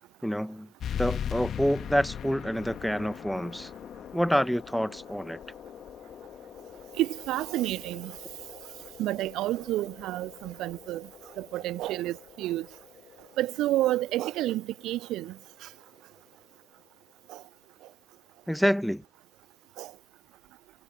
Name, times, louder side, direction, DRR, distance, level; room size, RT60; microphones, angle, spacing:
voice 1, 0.2-0.7 0.9-3.7 4.1-5.4 18.5-19.0, equal, ahead, 1.5 m, -27 dB
sound 1, 0.8-15.9, left 9 dB, 25° left, 2.0 m, -41 dB
voice 2, 7.0-8.1 9.0-11.1 11.4-12.7 13.4-15.3 15.6-15.7 17.3-17.4 19.8-19.9, right 15 dB, 35° right, 0.8 m, -30 dB
figure-of-eight pair, 90°, 0 cm